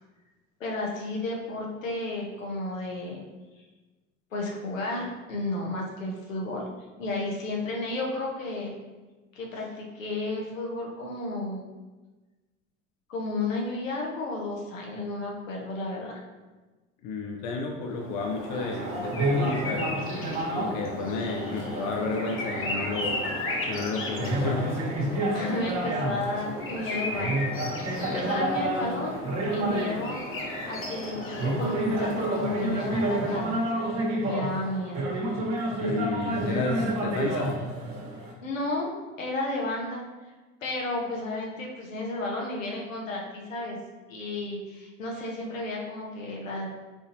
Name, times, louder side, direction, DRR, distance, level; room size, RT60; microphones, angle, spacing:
voice 1, 0.6-3.2 4.3-6.6 7.0-8.7 9.4-11.6 13.1-16.2 25.3-27.5 28.0-29.2 29.5-30.2 30.7-33.6 34.2-35.1 38.4-38.9 39.2-40.0 40.6-43.8 44.1-46.7, left 2 dB, 80° left, -1 dB, 0.9 m, -32 dB
voice 2, 17.0-20.0 20.5-23.2 23.7-24.7 35.8-37.5, left 3 dB, 55° left, 2 dB, 0.7 m, -32 dB
sound 1, 17.9-33.8, left 2 dB, 35° left, 1.0 m, -36 dB
sound 2, 18.5-38.3, right 1 dB, 45° right, 1.4 m, -30 dB
4.7 x 3.8 x 2.8 m, 1.2 s
figure-of-eight pair, 65°, 39 cm